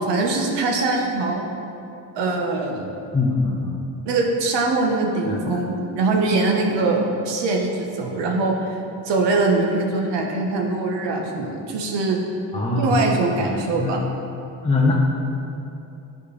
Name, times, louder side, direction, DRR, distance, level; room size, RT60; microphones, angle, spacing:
voice 1, 0.0-1.4 2.1-2.9 4.0-8.8 9.0-12.2 12.7-14.1, right 3 dB, 75° right, 1 dB, 1.2 m, -22 dB
voice 2, 3.1-3.8 5.3-5.5 12.5-12.9 13.4-13.9 14.6-14.9, left 3 dB, 15° left, -5 dB, 0.8 m, -22 dB
10.5 x 5.0 x 3.3 m, 2.8 s
cardioid pair, 125°, 42 cm